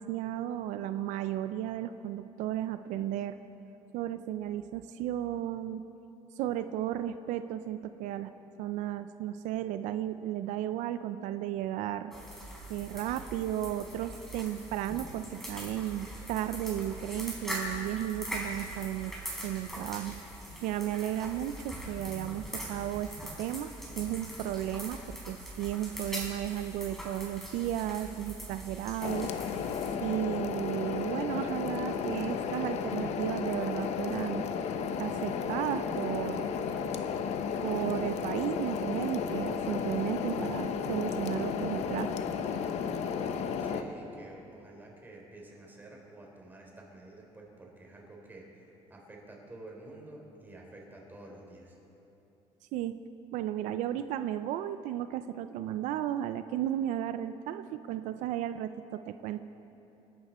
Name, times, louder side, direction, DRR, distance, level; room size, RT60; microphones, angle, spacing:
voice 1, 0.0-3.4 3.9-5.8 6.4-12.1 12.7-19.1 19.4-20.2 20.6-23.1 23.4-29.3 30.0-34.5 35.0-36.5 37.6-42.1 52.7-53.0 53.3-59.4, right 12 dB, 85° right, 11 dB, 0.5 m, -34 dB
sound 1, 12.1-29.9, right 1 dB, ahead, 4.1 m, -42 dB
sound 2, 29.0-43.8, left 6 dB, 65° left, 0.9 m, -33 dB
voice 2, 43.6-51.8, right 2 dB, 15° right, -1 dB, 3.5 m, -50 dB
27.5 x 11.5 x 4.3 m, 3.0 s
cardioid pair, 125°, 12 cm